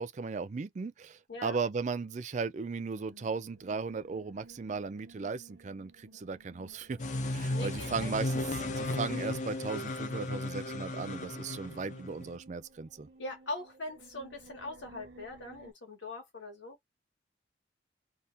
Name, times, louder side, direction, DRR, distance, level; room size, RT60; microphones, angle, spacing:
voice 1, 0.0-7.0 7.3-13.1, right 4 dB, 40° right, 0.4 m, -36 dB
voice 2, 1.3-1.6 7.5-8.1 8.6-8.7 13.2-16.8, left 2 dB, 80° left, 1.7 m, -41 dB
sound 1, 2.9-15.7, right 1 dB, 60° right, 1.3 m, -57 dB
sound 2, 7.0-12.4, left 2 dB, 40° left, 0.5 m, -35 dB
3.5 x 2.8 x 2.5 m
head